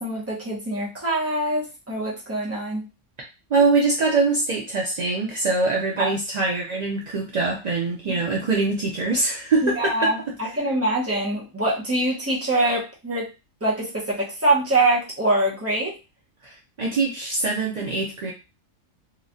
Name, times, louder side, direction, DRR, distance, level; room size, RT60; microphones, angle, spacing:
voice 1, 0.0-2.9 6.0-6.1 8.0-8.2 9.6-13.3 13.6-15.9, right 2 dB, 15° right, -4 dB, 0.7 m, -24 dB
voice 2, 3.5-10.1 16.4-18.3, right 3 dB, 70° right, -1 dB, 0.4 m, -23 dB
3.0 x 2.4 x 2.5 m, 0.29 s
omnidirectional pair, 1.4 m